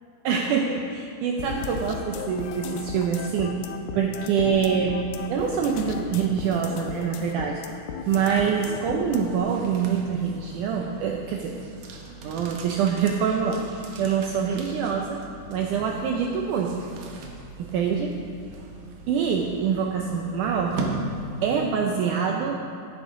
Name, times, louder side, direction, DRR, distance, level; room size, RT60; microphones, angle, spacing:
voice 1, 0.2-3.6 3.9-5.0 5.3-11.5 12.2-13.6 14.0-15.2 15.5-16.7 17.6-18.1 19.1-20.7 21.4-22.6, right 7 dB, 80° right, 1 dB, 1.8 m, -25 dB
sound 1, 1.4-9.4, left 7 dB, 90° left, 2.5 m, -35 dB
sound 2, 7.9-21.8, right 3 dB, 65° right, 1.9 m, -39 dB
15.0 x 9.3 x 3.7 m, 2.6 s
omnidirectional pair, 4.3 m